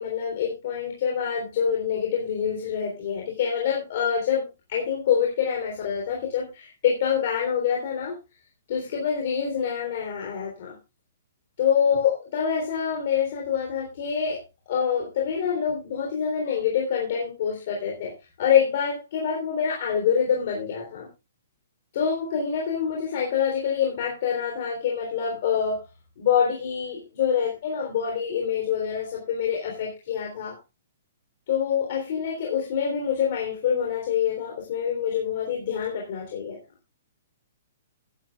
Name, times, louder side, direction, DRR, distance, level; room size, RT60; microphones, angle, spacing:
voice 1, 0.0-8.2 8.7-10.8 11.6-18.1 18.4-21.1 21.9-25.8 26.2-30.6 31.5-36.6, left 7 dB, 40° left, 0 dB, 3.5 m, -26 dB
18.0 x 11.0 x 2.4 m, 0.28 s
hypercardioid pair, 175°, 0 cm